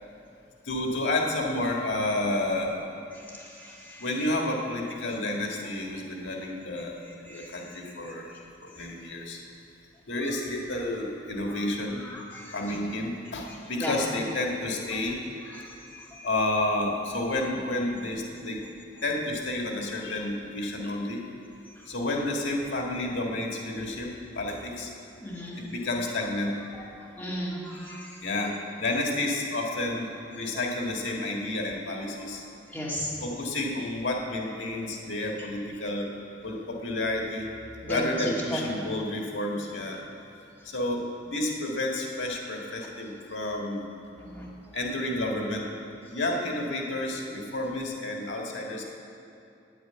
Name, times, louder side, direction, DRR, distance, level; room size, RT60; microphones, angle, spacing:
voice 1, 0.6-3.0 4.0-8.2 8.7-9.4 10.1-12.0 12.5-15.2 16.2-18.6 19.0-21.2 21.9-24.1 24.3-24.9 25.6-26.5 28.2-28.5 28.8-32.4 33.2-36.1 36.4-37.5 37.9-40.0 40.6-43.8 44.7-45.6 46.1-48.8, left 1 dB, 80° left, 0 dB, 1.6 m, -30 dB
voice 2, 3.6-4.0 7.3-7.5 12.0-12.8 13.8-13.9 15.6-15.7 15.9-16.3 25.2-25.5 27.2-28.1 32.7-33.1 37.8-38.0 38.5-38.6 44.2-44.5, equal, 10° left, -6 dB, 2.6 m, -36 dB
9.4 x 9.2 x 9.2 m, 2.6 s
head